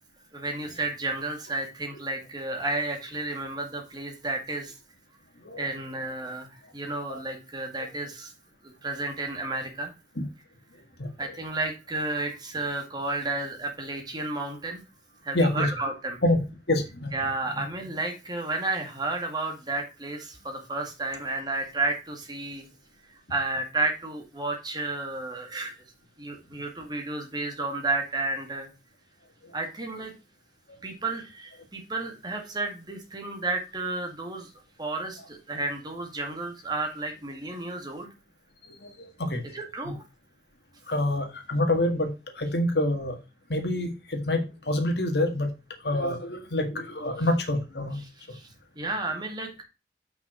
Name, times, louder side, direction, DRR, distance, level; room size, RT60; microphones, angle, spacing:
voice 1, 0.3-4.7 5.6-8.3 8.6-9.9 11.2-14.8 15.2-16.2 17.1-22.7 23.1-25.8 26.2-28.7 29.5-30.1 30.8-34.5 34.8-38.1 39.5-40.0 48.0-49.6, right 2 dB, 25° right, 3 dB, 2.0 m, -32 dB
voice 2, 15.3-15.7 16.2-16.4 16.7-17.1 38.8-38.9 39.2-39.4 40.9-42.1 42.4-43.2 43.5-45.5 45.8-48.0, left 1 dB, 70° left, 6 dB, 1.8 m, -26 dB
6.0 x 5.9 x 6.0 m, 0.28 s
head